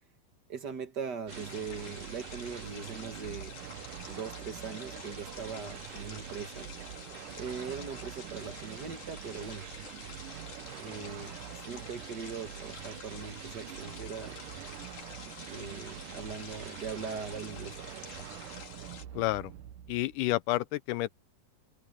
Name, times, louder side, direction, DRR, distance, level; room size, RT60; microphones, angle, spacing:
voice 1, 0.5-3.5 4.1-6.7 7.3-9.7 10.8-14.4 15.5-18.1, right 6 dB, 50° right, 1.3 m, -40 dB
sound 1, 1.3-19.1, left 6 dB, 60° left, 4.3 m, -48 dB
sound 2, 1.3-20.3, right 12 dB, 75° right, 2.4 m, -45 dB
Dog, 3.7-9.3, right 2 dB, 15° right, 7.5 m, -59 dB
voice 2, 19.2-19.5 19.9-21.1, left 17 dB, 80° left, 1.9 m, -30 dB
omnidirectional pair, 4.0 m